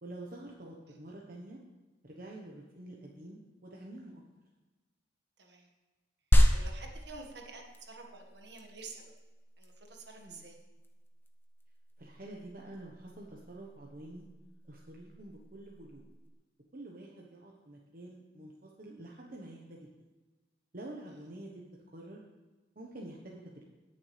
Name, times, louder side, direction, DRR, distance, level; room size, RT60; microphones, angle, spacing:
voice 1, 0.0-1.6 2.0-4.2 10.2-10.4 12.0-14.3 14.7-16.0 16.7-19.9 20.7-21.6 21.9-22.2 22.7-23.6, right 1 dB, 50° right, -2 dB, 1.1 m, -47 dB
voice 2, 5.4-5.7 6.5-9.1 9.6-10.6, right 3 dB, 65° right, 2 dB, 1.6 m, -49 dB
sound 1, 6.3-16.3, equal, 10° left, 0.8 m, -32 dB
17.5 x 7.2 x 3.3 m, 1.2 s
head